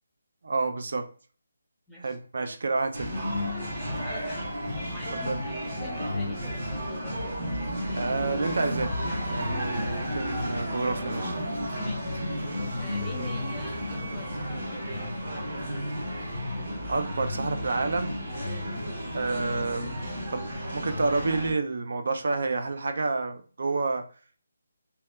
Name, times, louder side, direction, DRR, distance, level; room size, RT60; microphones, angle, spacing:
voice 1, 0.4-1.1 2.0-3.2 5.1-5.4 7.9-8.9 9.3-11.3 16.9-18.1 19.1-24.1, right 3 dB, 60° right, 7 dB, 0.3 m, -29 dB
sound 1, 2.9-21.5, equal, 45° right, 1.1 m, -32 dB
voice 2, 3.9-4.5 4.9-7.4 11.8-12.1 12.5-15.2, left 1 dB, ahead, -7 dB, 0.6 m, -45 dB
2.8 x 2.1 x 2.2 m, 0.40 s
hypercardioid pair, 165°, 0 cm